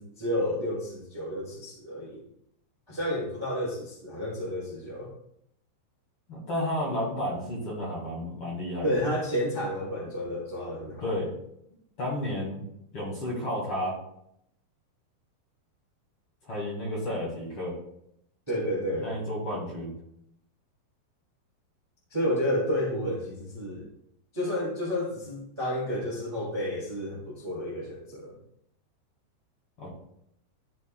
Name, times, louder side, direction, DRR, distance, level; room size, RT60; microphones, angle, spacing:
voice 1, 0.0-2.2 2.9-5.1 8.8-11.0 18.5-19.1 22.1-23.9 24.3-28.4, equal, 30° right, -5 dB, 0.5 m, -31 dB
voice 2, 6.3-8.9 11.0-11.3 12.0-12.6 12.9-13.9 16.4-17.7 19.0-19.9 29.8-29.9, left 1 dB, 45° left, -5 dB, 2.1 m, -32 dB
13.0 x 5.4 x 2.3 m, 0.75 s
omnidirectional pair, 5.3 m